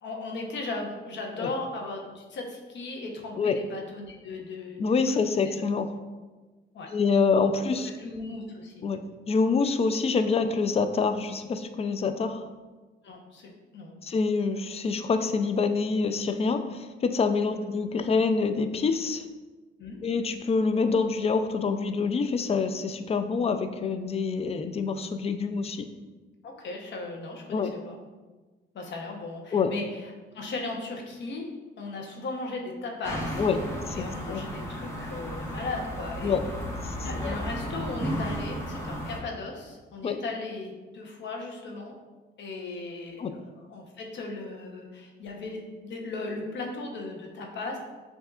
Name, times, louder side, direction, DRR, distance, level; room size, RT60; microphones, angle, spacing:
voice 1, 0.0-5.0 6.7-6.9 7.7-8.9 13.0-14.0 17.5-17.7 19.8-20.0 26.4-28.0 28.7-31.5 31.8-33.4 33.9-36.3 37.0-42.0 42.4-47.8, left 3 dB, 65° left, 1 dB, 1.0 m, -37 dB
voice 2, 4.8-5.9 6.9-7.9 8.8-9.0 9.3-12.4 14.0-19.2 20.0-25.9 27.5-27.7 29.5-29.7 33.4-33.6 33.9-34.4 36.2-36.4 36.8-37.3 40.0-40.2 43.2-43.3, left 4 dB, 30° left, 9 dB, 0.4 m, -26 dB
sound 1, 33.0-39.2, equal, 15° left, 1.2 m, -34 dB
7.0 x 2.7 x 2.4 m, 1.3 s
cardioid pair, 90°, 20 cm